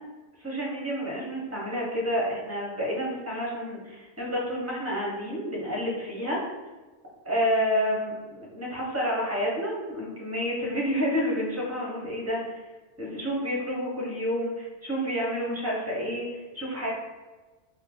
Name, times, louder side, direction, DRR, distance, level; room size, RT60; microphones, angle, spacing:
voice 1, 0.4-6.4 7.2-12.6 13.0-16.9, equal, 15° right, -4 dB, 0.9 m, -29 dB
4.0 x 2.3 x 3.6 m, 1.2 s
omnidirectional pair, 1.2 m